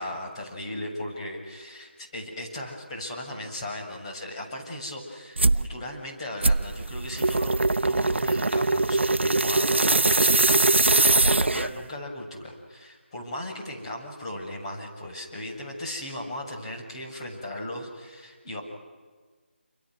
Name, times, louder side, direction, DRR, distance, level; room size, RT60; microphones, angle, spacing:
voice 1, 0.0-18.6, left 1 dB, 30° left, -1 dB, 7.1 m, -37 dB
sound 1, 5.4-5.7 6.4-11.8, right 2 dB, 80° right, 0.8 m, -22 dB
29.5 x 28.0 x 6.5 m, 1.5 s
figure-of-eight pair, 165°, 6 cm